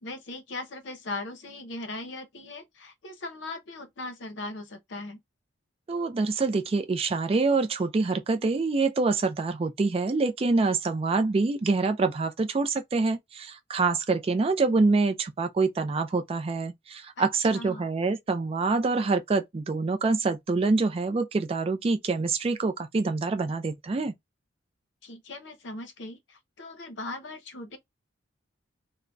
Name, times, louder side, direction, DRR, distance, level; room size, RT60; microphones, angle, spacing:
voice 1, 0.0-5.2 17.2-17.8 25.0-27.8, left 2 dB, 65° left, 0.7 m, -39 dB
voice 2, 5.9-24.1, right 3 dB, 30° right, 0.3 m, -26 dB
3.7 x 2.0 x 2.2 m
head